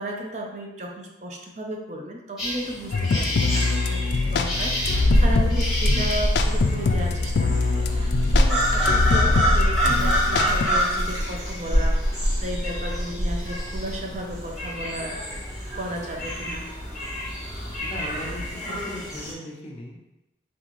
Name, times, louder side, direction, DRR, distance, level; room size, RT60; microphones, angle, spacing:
voice 1, 0.0-15.4 15.7-16.7, right 1 dB, 40° right, 0 dB, 0.5 m, -34 dB
sound 1, 2.4-19.3, equal, ahead, 1.3 m, -29 dB
sound 2, 2.9-10.6, left 4 dB, 70° left, 0.3 m, -24 dB
Child speech kid speaking, 4.1-18.5, equal, 20° right, 1.0 m, -26 dB
voice 2, 8.8-9.4 17.8-20.0, left 1 dB, 30° left, -2 dB, 0.7 m, -37 dB
4.0 x 3.6 x 3.0 m, 0.96 s
head